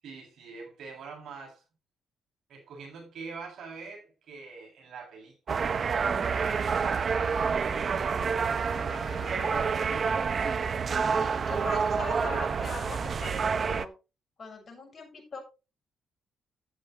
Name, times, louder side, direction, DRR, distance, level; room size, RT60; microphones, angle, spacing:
voice 1, 0.0-1.6 2.5-9.2, right 5 dB, 65° right, 7.6 m, -45 dB
sound 1, 5.5-13.9, right 5 dB, 45° right, 0.9 m, -28 dB
Wind instrument woodwind instrument, 7.7-11.6, left 5 dB, 85° left, 2.4 m, -48 dB
voice 2, 11.1-13.9 14.4-15.4, left 4 dB, 35° left, 7.1 m, -41 dB
13.0 x 8.5 x 3.3 m
cardioid pair, 90°, 0 cm